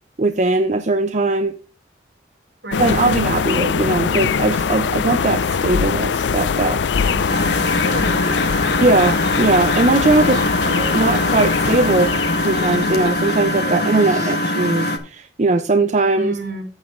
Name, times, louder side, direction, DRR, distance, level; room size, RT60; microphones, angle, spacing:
voice 1, 0.2-1.6 2.8-6.8 8.7-12.1 12.4-16.4, right 2 dB, 40° right, 9 dB, 0.6 m, -19 dB
sound 1, 2.7-13.6, left 6 dB, 75° left, 0.5 m, -22 dB
voice 2, 6.9-8.4 10.2-10.4 13.7-14.0 16.1-16.6, right 1 dB, 70° right, 0 dB, 4.9 m, -31 dB
Engine, 7.3-15.0, left 1 dB, 60° left, 1.5 m, -22 dB
sound 2, 9.4-13.1 13.5-14.4 14.9-15.0, right 1 dB, 15° right, 2.0 m, -37 dB
9.2 x 8.9 x 3.6 m, 0.36 s
head